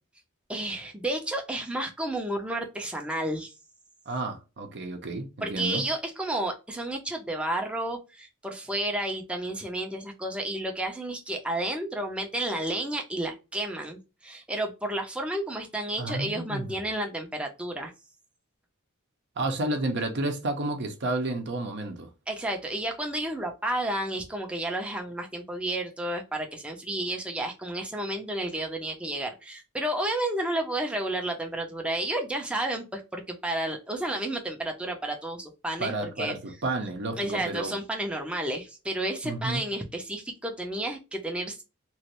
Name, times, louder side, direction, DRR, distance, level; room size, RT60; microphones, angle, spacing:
voice 1, 0.5-3.5 5.4-17.9 22.3-36.4 37.2-41.6, right 1 dB, 5° right, 0.6 m, -31 dB
voice 2, 4.1-5.8 16.0-16.7 19.4-22.1 35.8-37.8 39.2-39.6, right 2 dB, 55° right, 0.7 m, -31 dB
3.1 x 2.5 x 2.9 m
head